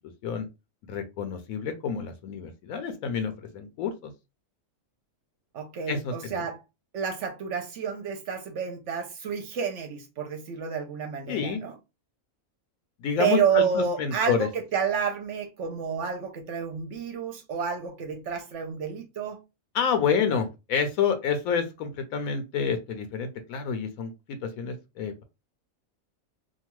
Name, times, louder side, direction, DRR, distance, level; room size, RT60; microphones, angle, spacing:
voice 1, 0.9-4.1 5.9-6.4 11.3-11.6 13.0-14.5 19.7-25.2, left 6 dB, 85° left, 1.0 m, -29 dB
voice 2, 5.5-6.6 6.9-11.7 13.2-19.4, right 7 dB, 65° right, 0.8 m, -29 dB
2.7 x 2.3 x 2.9 m
omnidirectional pair, 1.4 m